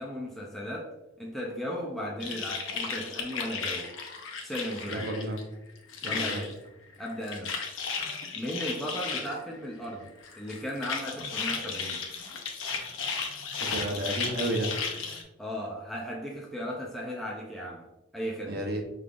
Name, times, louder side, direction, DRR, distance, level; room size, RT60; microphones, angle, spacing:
voice 1, 0.0-3.9 4.4-5.1 6.0-6.5 7.0-7.6 8.3-12.1 15.4-18.6, equal, ahead, 0.4 m, -36 dB
sound 1, 2.2-5.4 5.7-6.5 7.0-9.3 10.2-15.2, left 5 dB, 70° left, 0.7 m, -34 dB
voice 2, 4.9-5.4 6.0-6.4 13.6-14.7 18.5-18.8, right 1 dB, 55° right, 0.9 m, -31 dB
5.1 x 3.3 x 2.5 m
head